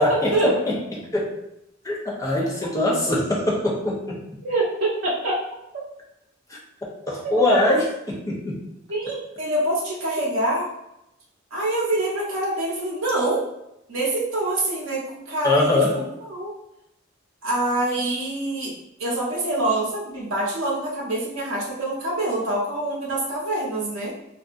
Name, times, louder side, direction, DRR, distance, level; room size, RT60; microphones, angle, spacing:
voice 1, 0.0-1.4 1.8-4.2 6.5-6.6 7.1-7.9 8.3-8.6 15.4-16.0, left 2 dB, 15° left, -3 dB, 0.6 m, -22 dB
voice 2, 5.0-5.4 7.5-7.6 8.9-10.7 11.5-13.4 13.9-15.7 16.3-16.5 17.4-18.7 19.0-24.1, right 1 dB, 85° right, -5 dB, 0.7 m, -25 dB
2.5 x 2.3 x 2.4 m, 0.84 s
head